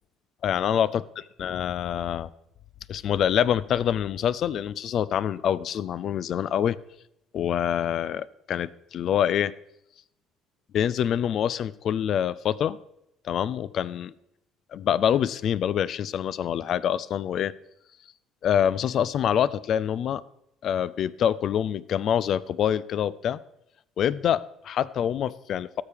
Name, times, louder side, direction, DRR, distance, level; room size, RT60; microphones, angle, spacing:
voice 1, 0.4-1.0 1.4-2.3 2.9-6.8 7.3-9.5 10.7-12.8 13.2-14.1 14.7-17.5 18.4-20.2 20.6-23.4 24.0-25.8, left 9 dB, 55° left, 20 dB, 0.4 m, -25 dB
17.5 x 6.9 x 3.5 m, 0.81 s
figure-of-eight pair, 55°, 0 cm